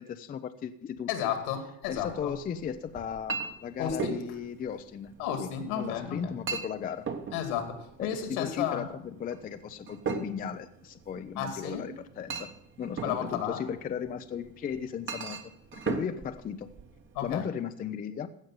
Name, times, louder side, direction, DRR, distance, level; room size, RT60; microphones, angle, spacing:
voice 1, 0.0-1.1 1.9-5.1 5.4-7.1 8.0-12.5 12.8-15.4 15.7-16.7 17.2-18.3, left 8 dB, 20° left, 10 dB, 0.5 m, -36 dB
voice 2, 1.1-2.3 3.8-4.2 5.2-6.3 7.3-8.8 11.4-11.9 13.0-13.7 17.1-17.5, left 9 dB, 75° left, 7 dB, 2.5 m, -33 dB
Chink clink, 1.8-17.4, right 5 dB, 25° right, 1.1 m, -40 dB
15.5 x 5.3 x 7.5 m, 0.77 s
supercardioid pair, 110°, 44 cm